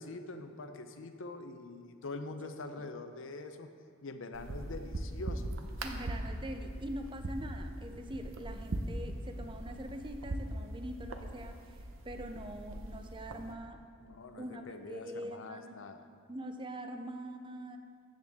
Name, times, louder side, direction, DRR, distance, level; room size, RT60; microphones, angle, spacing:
voice 1, 0.0-3.7 4.0-5.5 14.0-16.0, left 2 dB, 65° left, 7 dB, 0.7 m, -44 dB
sound 1, 4.3-13.5, right 1 dB, 65° right, 0.8 m, -40 dB
voice 2, 5.8-11.8 12.0-13.8 14.4-15.8 16.3-17.8, right 1 dB, 25° right, 6 dB, 0.6 m, -43 dB
13.5 x 7.8 x 3.6 m, 2.3 s
head